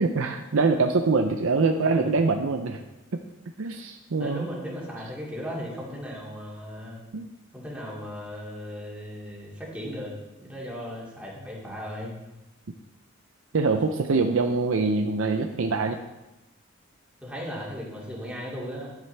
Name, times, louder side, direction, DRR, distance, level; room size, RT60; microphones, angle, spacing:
voice 1, 0.0-2.8 3.6-4.4 7.1-7.3 13.5-16.0, right 4 dB, 75° right, 5 dB, 0.6 m, -24 dB
voice 2, 1.8-2.1 4.2-7.0 7.5-10.1 10.4-12.2 17.2-18.9, equal, 5° right, -6 dB, 2.5 m, -37 dB
11.0 x 9.2 x 3.4 m, 0.98 s
head